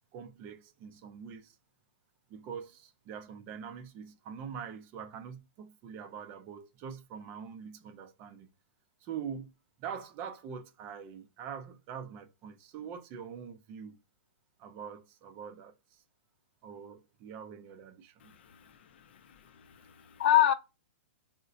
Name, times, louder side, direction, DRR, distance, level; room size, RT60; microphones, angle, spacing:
voice 1, 0.1-1.6 2.3-8.5 9.0-9.5 9.8-14.0 14.6-16.0 16.6-18.4, right 7 dB, 30° right, 0.4 m, -44 dB
voice 2, 18.2-18.7 19.1-19.2 19.5-20.5, left 12 dB, 55° left, 0.4 m, -27 dB
3.8 x 2.1 x 2.5 m
hypercardioid pair, 155°, 7 cm